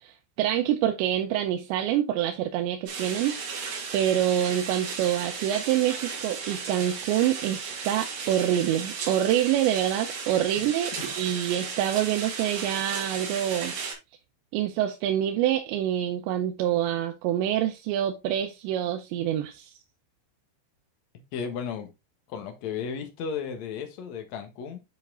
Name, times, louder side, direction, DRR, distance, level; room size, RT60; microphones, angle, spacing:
voice 1, 0.0-3.4 3.9-13.8 14.5-19.7, right 11 dB, 85° right, 3.0 m, -26 dB
sound 1, 2.9-13.9, right 5 dB, 65° right, 4.3 m, -35 dB
voice 2, 21.3-21.9 22.3-24.8, left 6 dB, 65° left, 1.8 m, -34 dB
9.7 x 4.2 x 3.6 m
omnidirectional pair, 5.0 m